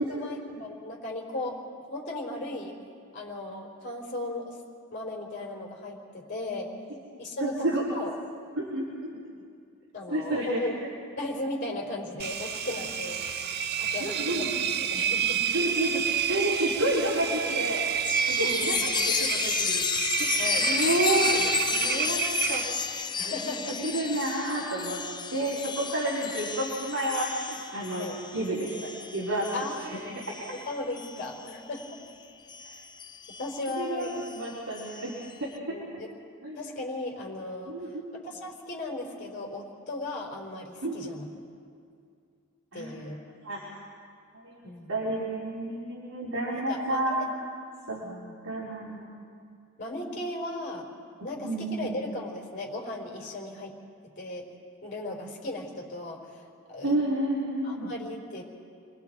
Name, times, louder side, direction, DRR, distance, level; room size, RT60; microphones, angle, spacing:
voice 1, 0.1-2.7 3.1-4.6 4.9-6.7 7.2-8.1 9.9-10.7 11.2-13.2 13.8-15.4 18.4-18.9 20.4-20.7 23.2-23.8 28.0-28.2 29.5-29.8 30.5-31.8 32.6-32.8 33.4-34.2 35.7-36.1 36.6-41.3 42.7-43.2 44.6-45.0 46.6-47.3 48.0-48.3 49.8-50.9 51.2-53.7 54.2-54.4 54.8-57.0 57.6-58.4, left 2 dB, 40° left, -1 dB, 4.1 m, -36 dB
voice 2, 7.4-7.8 8.6-9.1 10.1-10.6 14.0-14.7 15.5-16.0 16.3-17.8 18.3-18.8 19.2-19.8 20.2-20.3 20.6-22.2 22.5-22.6 23.2-23.3 23.8-25.0 25.3-29.5 29.8-30.0 30.3-30.5 33.8-34.1 34.3-35.8 36.4-36.6 37.7-38.2 40.8-41.0 42.7-42.9 43.4-43.6 44.4-44.6 44.9-47.3 47.9-48.0 48.4-49.1 51.2-52.0 56.8-57.9, right 1 dB, 70° right, -8 dB, 4.0 m, -30 dB
Engine, 12.2-23.0, right 7 dB, 50° right, 0.7 m, -29 dB
Chime, 18.0-32.0 32.5-35.3, left 6 dB, 20° left, 0.5 m, -33 dB
29.5 x 22.5 x 4.6 m, 2.3 s
head